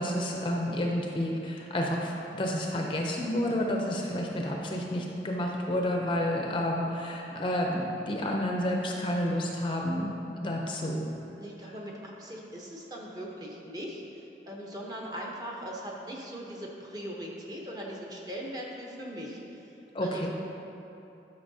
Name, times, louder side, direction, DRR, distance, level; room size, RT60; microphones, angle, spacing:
voice 1, 0.0-11.1 19.9-20.3, left 1 dB, 30° left, 0 dB, 0.5 m, -30 dB
voice 2, 11.4-14.0 14.5-19.4 20.0-20.3, equal, 20° right, -2 dB, 0.8 m, -40 dB
11.0 x 5.5 x 2.7 m, 2.9 s
head